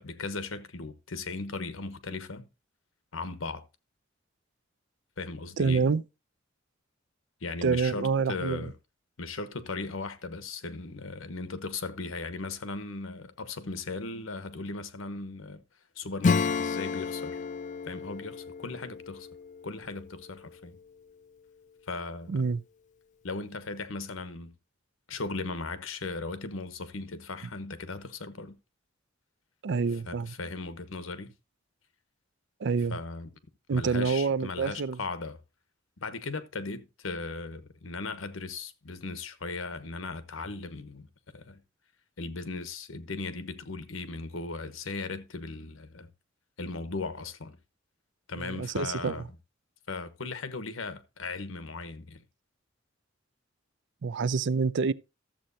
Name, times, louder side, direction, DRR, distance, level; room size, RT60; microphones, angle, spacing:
voice 1, 0.0-2.5 3.1-3.6 5.2-5.9 7.4-8.7 9.2-15.6 16.0-17.4 17.8-19.3 19.6-20.8 21.9-22.5 23.2-24.6 25.1-28.6 30.0-31.3 32.9-33.3 33.7-35.4 36.0-41.1 41.3-41.6 42.2-46.1 46.6-47.6 48.3-49.2 49.9-52.2, left 3 dB, 85° left, 1.1 m, -37 dB
voice 2, 5.6-6.0 7.6-8.7 22.3-22.6 29.6-30.3 32.6-33.0 33.7-35.0 48.4-49.2 54.0-54.9, right 5 dB, 60° right, 0.5 m, -27 dB
Acoustic guitar / Strum, 16.2-20.5, left 5 dB, 40° left, 0.4 m, -31 dB
13.0 x 7.6 x 2.7 m
head